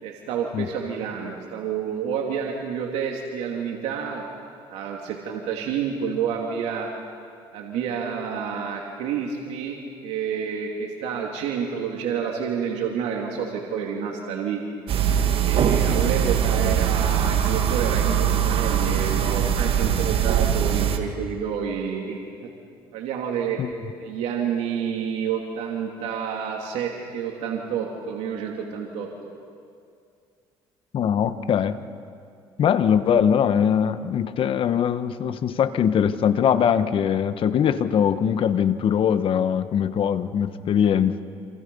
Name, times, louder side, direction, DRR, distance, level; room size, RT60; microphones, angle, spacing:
voice 1, 0.0-4.3 4.7-6.9 7.5-14.6 15.4-22.5 22.9-23.6 24.0-29.3, right 7 dB, 80° right, 0 dB, 2.7 m, -29 dB
sound 1, 14.9-21.0, right 9 dB, 60° right, 2.2 m, -22 dB
voice 2, 30.9-31.8 32.6-41.1, left 8 dB, 55° left, 11 dB, 1.3 m, -21 dB
28.0 x 28.0 x 5.5 m, 2.3 s
cardioid pair, 95°, 11 cm